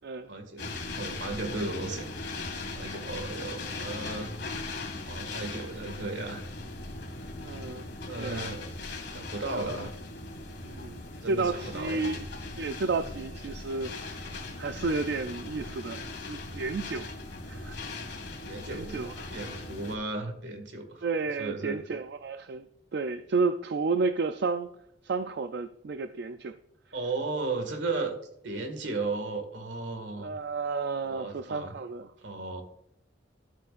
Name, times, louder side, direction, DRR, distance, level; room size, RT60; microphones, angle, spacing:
voice 1, 0.3-2.1 2.7-4.3 5.1-6.4 8.1-8.7 9.1-9.9 11.2-12.0 18.4-19.0 19.3-21.1 21.4-21.8 26.9-28.2 28.4-30.3 31.0-31.8 32.2-32.6, right 3 dB, 85° right, 1.9 m, -35 dB
sound 1, 0.6-20.0, left 2 dB, 60° left, 2.0 m, -39 dB
voice 2, 7.4-7.9 8.2-8.5 9.5-9.6 10.6-11.0 11.3-12.2 12.6-17.1 17.5-17.8 18.7-19.1 21.0-22.6 22.9-24.7 25.0-26.6 30.2-32.1, right 4 dB, 60° right, 0.4 m, -32 dB
13.0 x 7.9 x 2.5 m
head